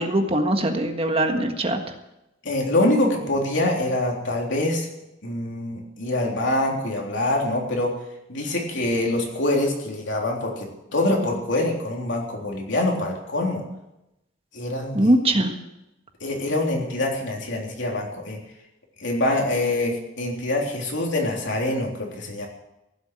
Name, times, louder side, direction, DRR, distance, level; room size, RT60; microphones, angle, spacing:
voice 1, 0.0-1.8 14.9-15.5, right 1 dB, 30° right, 5 dB, 1.5 m, -21 dB
voice 2, 2.4-4.9 5.2-8.0 8.3-13.6 14.5-15.1 16.2-18.4 19.0-22.5, left 1 dB, 65° left, 0 dB, 3.6 m, -25 dB
16.0 x 8.1 x 9.1 m, 0.91 s
head